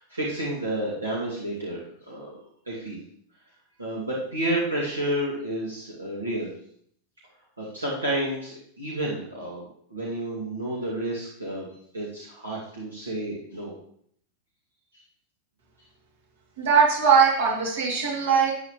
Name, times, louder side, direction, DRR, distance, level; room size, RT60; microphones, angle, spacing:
voice 1, 0.0-2.3 2.7-3.0 3.8-6.5 7.6-11.7 11.9-13.7, right 1 dB, 75° right, -5 dB, 2.1 m, -30 dB
voice 2, 16.6-18.5, right 6 dB, 60° right, -2 dB, 2.7 m, -20 dB
12.0 x 9.3 x 3.1 m, 0.64 s
figure-of-eight pair, 90°, 0 cm